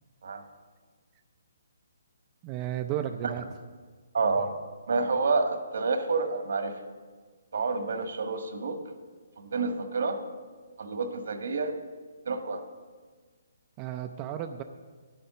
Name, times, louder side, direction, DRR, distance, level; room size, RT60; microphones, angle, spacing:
voice 1, 2.4-3.5 13.8-14.6, right 10 dB, 25° right, 7 dB, 0.4 m, -33 dB
voice 2, 4.1-4.5 4.9-6.7 7.5-8.8 9.4-10.2 10.8-11.7 12.3-12.6, right 4 dB, 70° right, 6 dB, 1.6 m, -28 dB
10.5 x 9.9 x 6.8 m, 1.5 s
hypercardioid pair, 160°, 0 cm